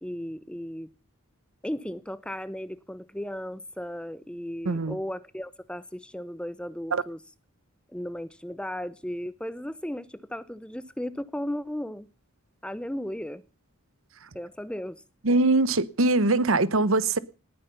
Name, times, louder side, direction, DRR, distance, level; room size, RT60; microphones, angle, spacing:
voice 1, 0.0-0.9 1.6-7.2 7.9-12.1 12.6-13.4 14.3-15.0, equal, 5° left, 0.7 m, -35 dB
voice 2, 4.6-5.0 6.9-7.0 14.2-14.3 15.2-17.2, right 2 dB, 65° right, 1.0 m, -22 dB
19.0 x 9.7 x 6.8 m
head